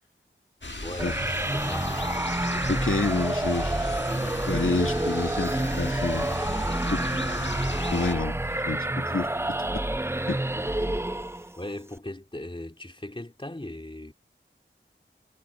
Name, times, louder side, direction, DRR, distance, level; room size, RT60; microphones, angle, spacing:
sound 1, 0.6-8.1, left 3 dB, 65° left, 1.6 m, -37 dB
sound 2, 0.7-6.7, right 2 dB, 70° right, 3.5 m, -46 dB
voice 1, 0.8-1.2 1.5-2.2 10.3-10.7 11.6-14.1, left 1 dB, 25° left, 2.6 m, -38 dB
sound 3, 1.0-11.6, right 1 dB, 10° right, 0.5 m, -28 dB
voice 2, 2.7-3.8 4.5-6.6 6.9-7.4 7.9-8.4 8.6-9.8 10.3-10.4, left 3 dB, 90° left, 2.5 m, -29 dB
wide cardioid pair, 45°, 21 cm